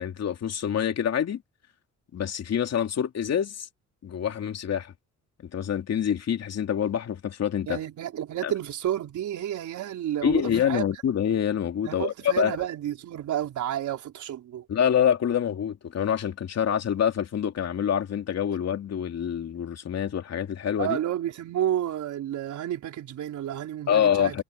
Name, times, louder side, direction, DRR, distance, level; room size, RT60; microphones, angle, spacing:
voice 1, 0.0-1.4 2.1-3.7 4.0-4.9 5.4-7.8 8.4-8.5 10.2-12.6 14.7-21.0 23.9-24.4, left 9 dB, 55° left, 2.9 m, -26 dB
voice 2, 7.7-10.8 11.8-14.6 20.8-24.4, right 11 dB, 75° right, 4.6 m, -31 dB
cardioid pair, 90°, 30 cm